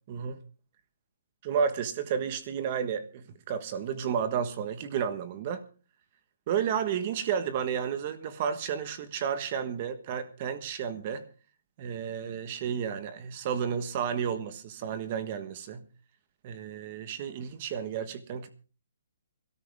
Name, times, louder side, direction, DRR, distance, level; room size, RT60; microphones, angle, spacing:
voice 1, 0.1-0.4 1.4-5.6 6.5-11.2 11.8-15.8 16.4-18.5, right 7 dB, 30° right, 1.4 m, -32 dB
23.0 x 13.5 x 3.6 m
hypercardioid pair, 175°, 0 cm